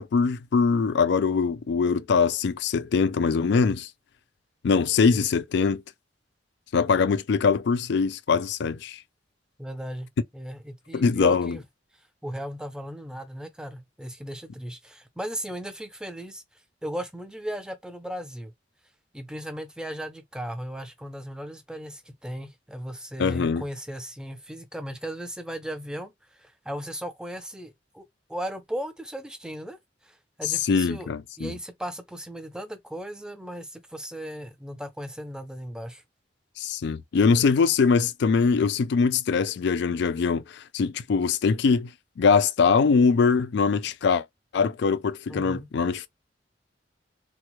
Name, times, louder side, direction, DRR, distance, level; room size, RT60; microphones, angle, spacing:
voice 1, 0.0-3.9 4.6-5.8 6.7-9.0 10.9-11.6 23.2-23.6 30.4-31.5 36.6-41.9 42.2-44.2 44.5-46.1, left 5 dB, 65° left, 0.4 m, -22 dB
voice 2, 9.6-11.6 12.2-16.4 16.8-18.5 19.1-28.0 28.3-31.1 31.4-36.0 45.3-45.7, equal, 5° right, 0.5 m, -36 dB
3.3 x 2.0 x 3.0 m
head